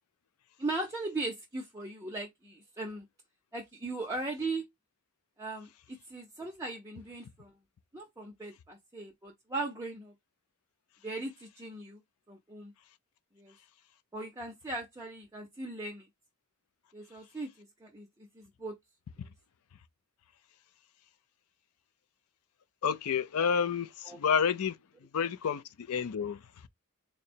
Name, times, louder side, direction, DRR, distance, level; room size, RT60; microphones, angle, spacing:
voice 1, 0.6-3.0 3.5-4.6 5.4-7.5 7.9-10.1 11.0-12.0 12.3-12.7 13.4-13.5 14.1-16.1 16.9-17.5 17.8-18.1 18.3-18.8 24.1-24.2, right 2 dB, 15° right, 0.6 m, -38 dB
voice 2, 22.8-24.8 25.1-26.4, left 7 dB, 70° left, 0.4 m, -29 dB
3.8 x 2.1 x 4.2 m
head